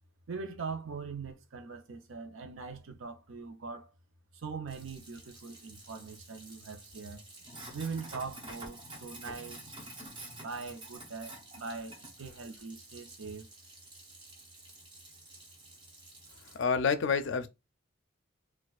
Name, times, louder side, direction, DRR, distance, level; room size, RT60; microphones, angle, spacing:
voice 1, 0.3-3.9 4.3-7.2 7.7-9.7 10.4-13.5, right 4 dB, 70° right, 0.6 m, -41 dB
Sink (filling or washing), 4.7-16.6, right 1 dB, 25° right, 0.7 m, -50 dB
voice 2, 16.5-17.5, left 5 dB, 60° left, 0.4 m, -28 dB
4.1 x 2.3 x 2.3 m
head